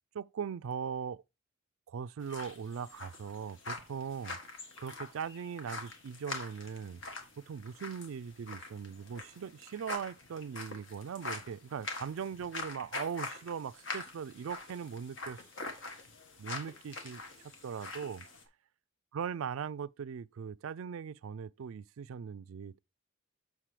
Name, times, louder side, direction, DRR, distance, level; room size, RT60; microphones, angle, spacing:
voice 1, 0.1-1.2 1.9-4.4 4.8-7.0 7.4-15.4 16.4-17.2 17.6-18.3 19.1-22.8, right 7 dB, 85° right, 0.4 m, -40 dB
sound 1, 2.2-18.4, left 3 dB, 65° left, 1.5 m, -44 dB
7.4 x 6.2 x 3.3 m
head